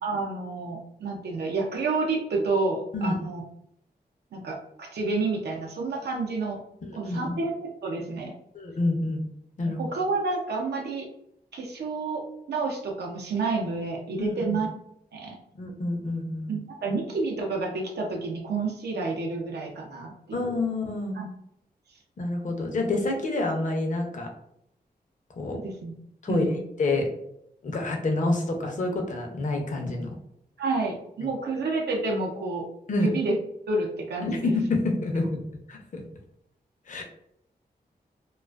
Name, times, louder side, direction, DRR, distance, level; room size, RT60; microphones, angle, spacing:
voice 1, 0.0-3.4 4.3-6.6 6.9-8.3 9.6-11.1 11.5-14.7 15.1-15.4 16.5-20.5 21.1-21.3 25.5-25.9 26.3-26.6 30.6-32.7 33.0-33.4 33.7-34.5, right 3 dB, 90° right, 0 dB, 0.5 m, -29 dB
voice 2, 6.8-7.4 8.5-9.2 9.6-9.8 14.2-14.6 15.5-16.5 20.3-21.2 22.2-24.3 25.3-25.6 26.2-26.5 26.8-27.1 27.6-30.1 32.9-33.1 34.2-35.4 35.7-36.0 36.9-37.0, left 2 dB, 50° left, 2 dB, 0.5 m, -28 dB
2.4 x 2.3 x 2.2 m, 0.74 s
wide cardioid pair, 95°, 17 cm